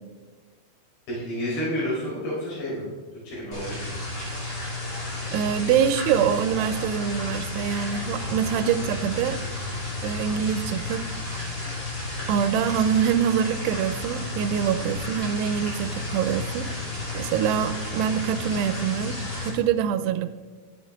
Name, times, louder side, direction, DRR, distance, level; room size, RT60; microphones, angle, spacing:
voice 1, 1.1-2.8 3.2-4.0, equal, 70° left, -8 dB, 5.9 m, -30 dB
sound 1, 3.5-19.5, left 2 dB, 35° left, 4.0 m, -32 dB
voice 2, 5.3-9.4 10.0-11.0 12.3-20.3, right 8 dB, 90° right, 10 dB, 2.6 m, -25 dB
14.5 x 8.5 x 3.5 m, 1.4 s
omnidirectional pair, 4.7 m